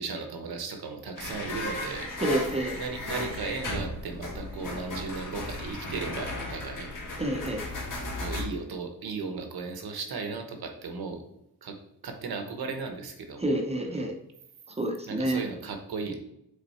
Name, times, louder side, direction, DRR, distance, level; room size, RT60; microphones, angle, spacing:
voice 1, 0.0-2.1 2.8-7.2 8.1-11.2 11.6-11.8 12.0-13.5 13.9-14.1 15.1-16.2, right 4 dB, 70° right, 5 dB, 1.1 m, -36 dB
sound 1, 1.2-8.4, left 2 dB, 55° left, 1.8 m, -35 dB
voice 2, 2.2-2.8 7.2-7.6 13.4-14.1 14.8-15.4, right 1 dB, 15° right, 3 dB, 0.7 m, -28 dB
6.9 x 4.0 x 4.2 m, 0.82 s
wide cardioid pair, 165°, 38 cm